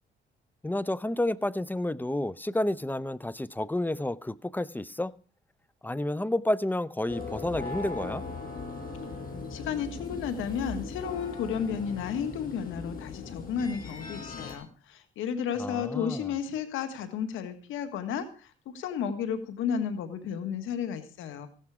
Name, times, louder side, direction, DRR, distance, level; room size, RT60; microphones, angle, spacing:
voice 1, 0.6-5.1 5.8-8.2 15.6-16.2, left 1 dB, 10° left, 0.6 m, -30 dB
sound 1, 7.1-14.6, left 4 dB, 45° left, 6.2 m, -39 dB
voice 2, 9.5-21.5, left 7 dB, 85° left, 1.7 m, -33 dB
15.5 x 12.0 x 4.9 m
cardioid pair, 90°, 20 cm